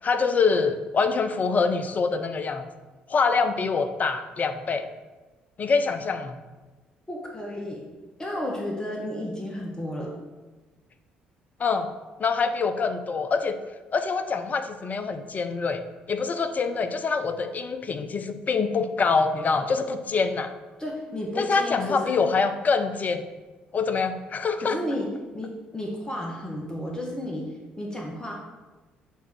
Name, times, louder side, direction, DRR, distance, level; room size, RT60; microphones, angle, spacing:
voice 1, 0.0-2.7 3.1-4.9 5.6-6.4 11.6-11.9 12.2-13.6 13.9-15.8 16.1-20.5 21.4-23.3 23.7-24.8, left 4 dB, 35° left, 8 dB, 0.6 m, -25 dB
voice 2, 7.1-7.8 8.2-10.1 20.8-22.2 24.6-25.1 25.3-28.3, left 1 dB, 15° left, -1 dB, 1.3 m, -32 dB
8.2 x 3.7 x 4.5 m, 1.2 s
figure-of-eight pair, 50°, 5 cm